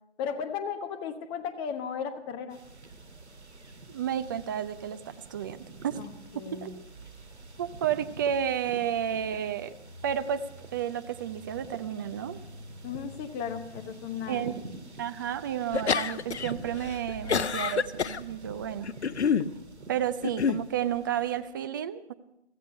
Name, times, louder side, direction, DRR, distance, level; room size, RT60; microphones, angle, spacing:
voice 1, 0.2-2.6 6.0-6.8 12.8-14.5, left 7 dB, 15° left, 7 dB, 0.9 m, -35 dB
sound 1, 2.5-21.4, right 2 dB, 85° right, 1.9 m, -46 dB
voice 2, 3.9-6.0 6.3-6.7 7.6-9.8 10.0-10.4 10.7-12.4 14.3-14.6 15.0-18.9 19.9-22.1, right 9 dB, 20° right, 11 dB, 0.5 m, -31 dB
sound 2, 15.7-16.5 16.8-18.2 18.8-19.5 20.2-20.6, left 6 dB, 80° left, 0.8 m, -27 dB
16.0 x 15.0 x 5.4 m, 0.84 s
figure-of-eight pair, 140°, 33 cm